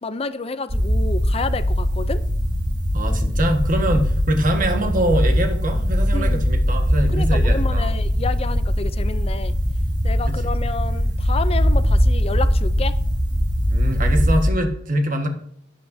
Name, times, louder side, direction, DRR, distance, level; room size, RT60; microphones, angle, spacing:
voice 1, 0.0-2.2 6.1-6.4 7.1-9.5 10.0-12.9, left 4 dB, 30° left, 0.5 m, -29 dB
sound 1, 0.7-14.5, equal, 25° right, 1.8 m, -20 dB
voice 2, 2.9-7.9 10.3-10.4 13.7-15.3, right 1 dB, 45° right, 1.5 m, -23 dB
11.5 x 8.6 x 2.7 m
head